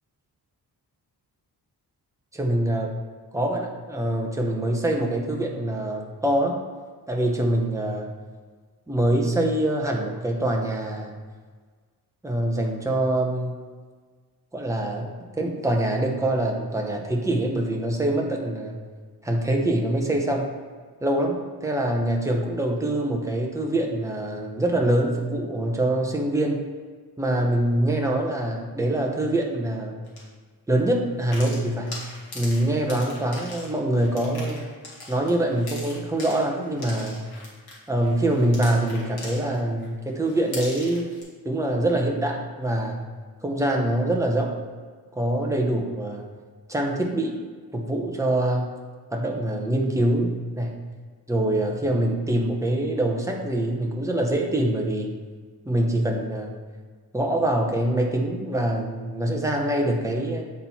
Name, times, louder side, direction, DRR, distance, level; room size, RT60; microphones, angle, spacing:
voice 1, 2.3-2.9 3.3-6.6 7.1-8.1 8.9-11.2 12.2-13.5 14.5-18.8 19.2-20.5 21.0-26.6 27.2-30.0 30.7-31.9 32.3-34.6 35.1-37.2 37.9-41.1 41.4-43.0 43.4-44.6 45.1-46.2 46.7-47.4 47.7-48.7 49.1-50.8 51.3-55.1 55.7-56.5 57.1-60.4, right 1 dB, 10° right, 1 dB, 0.8 m, -24 dB
sound 1, 30.1-30.2 31.2-39.9 40.2-41.2, left 2 dB, 70° left, 1.9 m, -40 dB
7.5 x 4.4 x 4.1 m, 1.5 s
wide cardioid pair, 165°, 40 cm